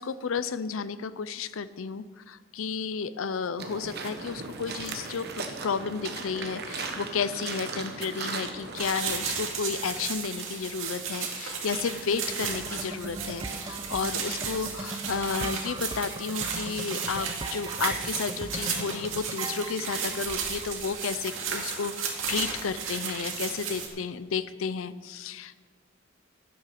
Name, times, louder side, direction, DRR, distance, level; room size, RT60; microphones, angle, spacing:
voice 1, 0.0-25.6, left 5 dB, 90° left, 15 dB, 0.5 m, -32 dB
sound 1, 3.6-8.8, right 4 dB, 55° right, 1.2 m, -37 dB
sound 2, 8.7-23.9, right 6 dB, 75° right, 2.1 m, -34 dB
sound 3, 12.2-20.7, right 3 dB, 20° right, 0.5 m, -40 dB
12.0 x 8.6 x 5.9 m, 1.5 s
head